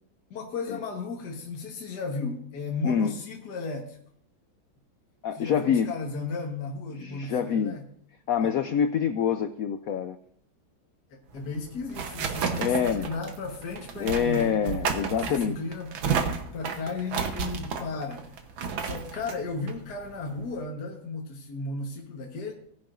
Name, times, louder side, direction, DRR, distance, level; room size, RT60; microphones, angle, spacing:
voice 1, 0.3-4.0 5.4-7.9 8.4-8.6 11.1-14.6 15.2-16.0 16.5-18.3 18.8-22.5, left 3 dB, 60° left, 0 dB, 1.8 m, -35 dB
voice 2, 5.2-5.9 7.0-7.8 8.3-10.2 12.6-13.1 14.0-15.6, left 7 dB, 85° left, 10 dB, 0.7 m, -26 dB
sound 1, 11.3-20.6, right 6 dB, 85° right, 1.9 m, -32 dB
17.5 x 10.5 x 2.6 m, 0.64 s
omnidirectional pair, 2.1 m